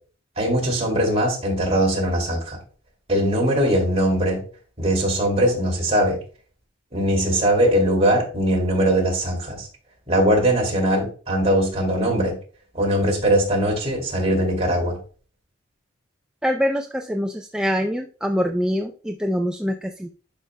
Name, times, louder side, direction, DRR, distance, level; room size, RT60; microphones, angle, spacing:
voice 1, 0.4-2.6 3.1-4.4 4.8-6.2 6.9-9.7 10.1-12.4 12.7-15.0, right 1 dB, 35° right, -1 dB, 2.6 m, -20 dB
voice 2, 16.4-20.2, equal, 5° right, 3 dB, 0.4 m, -24 dB
11.0 x 5.4 x 2.2 m, 0.40 s
head